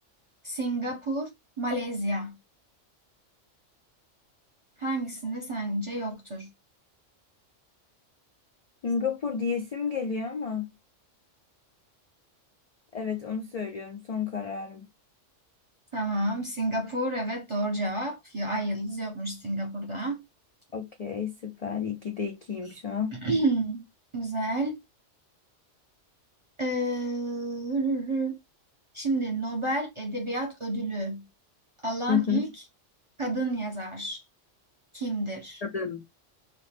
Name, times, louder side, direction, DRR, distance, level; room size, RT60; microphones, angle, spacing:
voice 1, 0.4-2.4 4.8-6.5 15.9-20.2 23.1-23.8 24.1-24.8 26.6-28.4 28.9-31.2 31.8-32.5 33.2-34.2 34.9-35.6, right 2 dB, 40° right, 0.4 m, -30 dB
voice 2, 8.8-10.7 12.9-14.9 20.7-23.2 32.1-32.5 35.6-36.0, left 6 dB, 75° left, 0.3 m, -31 dB
2.9 x 2.1 x 3.2 m
omnidirectional pair, 1.3 m